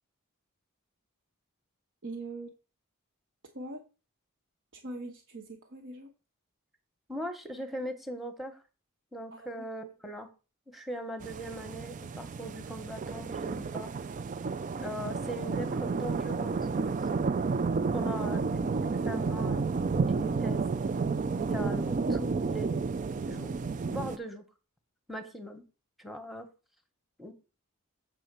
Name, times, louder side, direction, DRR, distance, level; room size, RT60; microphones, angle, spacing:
voice 1, 2.0-2.5 3.5-3.8 4.7-6.1 9.3-9.9, right 2 dB, 60° right, 1 dB, 1.1 m, -42 dB
voice 2, 7.1-8.6 9.1-10.3 10.7-13.9 14.8-17.1 17.9-19.7 20.1-20.6 21.3-22.8 23.3-23.5 23.8-24.4 25.1-25.6 26.0-26.5 27.2-27.3, equal, ahead, 6 dB, 1.1 m, -40 dB
sound 1, 11.2-24.2, right 4 dB, 35° right, 0.3 m, -31 dB
7.7 x 4.3 x 6.7 m, 0.32 s
head